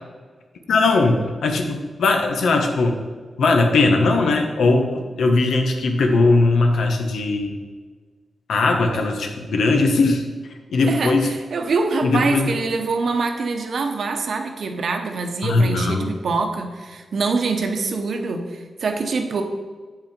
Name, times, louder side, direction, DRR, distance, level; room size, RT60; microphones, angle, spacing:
voice 1, 0.7-3.0 3.4-7.5 8.5-10.2 10.7-11.3 12.0-12.5 15.4-16.1, left 3 dB, 90° left, 3 dB, 1.4 m, -19 dB
voice 2, 10.8-19.4, right 4 dB, 55° right, 5 dB, 1.0 m, -24 dB
8.9 x 8.8 x 4.5 m, 1.4 s
wide cardioid pair, 175°, 0 cm